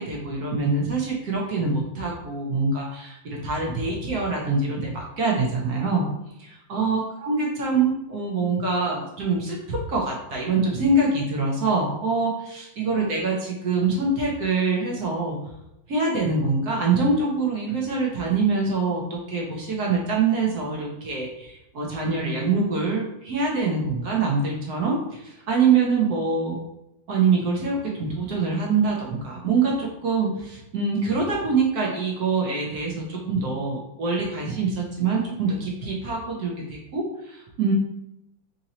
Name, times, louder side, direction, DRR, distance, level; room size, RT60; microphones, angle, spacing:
voice 1, 0.0-6.1 6.4-15.4 15.9-26.6 27.1-37.7, right 4 dB, 60° right, -2 dB, 1.1 m, -24 dB
3.8 x 2.8 x 4.2 m, 0.89 s
omnidirectional pair, 2.3 m